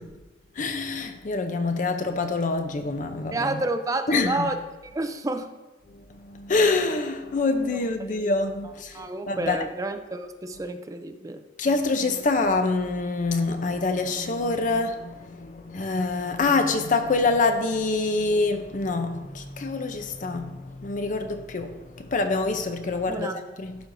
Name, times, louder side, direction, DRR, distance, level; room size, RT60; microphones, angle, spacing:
voice 1, 0.6-3.6 4.1-4.5 6.2-9.6 11.6-23.8, left 3 dB, 45° left, 8 dB, 0.6 m, -26 dB
voice 2, 3.3-4.6 4.9-5.5 8.1-8.3 8.9-11.4 23.1-23.3, right 2 dB, 20° right, 7 dB, 0.4 m, -30 dB
12.0 x 4.4 x 2.6 m, 1.2 s
head